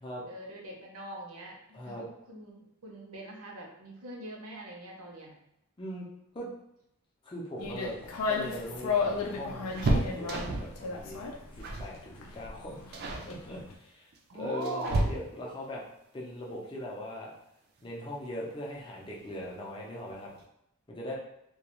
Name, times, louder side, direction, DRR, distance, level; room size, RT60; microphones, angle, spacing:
voice 1, 0.3-1.6 1.9-5.3 14.3-15.1, right 2 dB, 75° right, -1 dB, 0.7 m, -41 dB
voice 2, 5.8-6.1 6.3-6.5 7.2-8.0 8.3-11.3 11.6-12.8 13.2-15.8 16.1-17.3 17.8-20.3 20.9-21.1, left 1 dB, 20° left, -4 dB, 0.5 m, -40 dB
sound 1, 7.6-13.7, left 4 dB, 85° left, 0.4 m, -34 dB
sound 2, 8.1-10.8 11.6-12.0 12.2-12.5 12.9-13.3 14.1-15.6 17.3-17.4 17.8-17.9 19.1-19.5 19.8-19.9 20.2-20.4, right 2 dB, 45° right, 0.3 m, -32 dB
2.3 x 2.2 x 2.9 m, 0.79 s
head